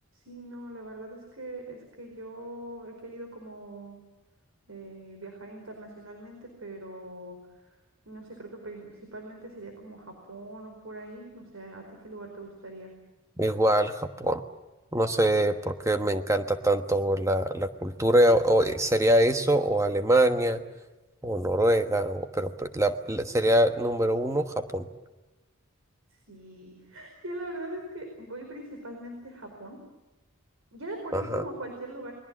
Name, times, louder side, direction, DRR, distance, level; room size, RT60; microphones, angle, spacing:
voice 1, 0.1-4.0 4.7-7.8 8.0-13.0 26.1-29.8 30.7-32.1, right 1 dB, 75° right, 3 dB, 4.7 m, -42 dB
voice 2, 13.4-14.4 14.9-20.6 21.2-24.9 31.1-31.4, right 1 dB, 15° right, 7 dB, 1.2 m, -24 dB
30.0 x 21.5 x 7.6 m, 1.1 s
head